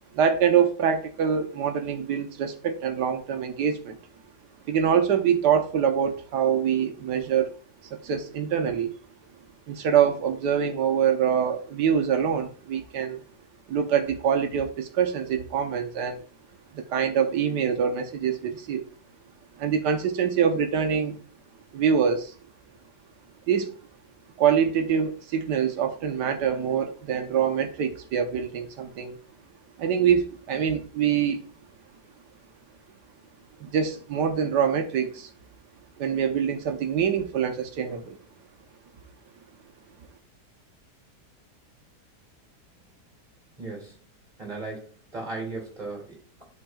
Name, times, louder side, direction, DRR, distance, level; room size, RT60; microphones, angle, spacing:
voice 1, 0.1-4.0 4.7-7.5 7.9-8.9 9.7-13.2 13.7-16.2 16.7-18.9 19.6-21.2 21.7-22.4 23.5-23.7 24.4-29.2 29.8-31.4 33.6-35.3 36.0-38.2, right 7 dB, 85° right, 1.5 m, -25 dB
voice 2, 43.6-44.0 44.4-46.4, right 3 dB, 25° right, 2.9 m, -37 dB
11.5 x 4.5 x 2.3 m
omnidirectional pair, 1.8 m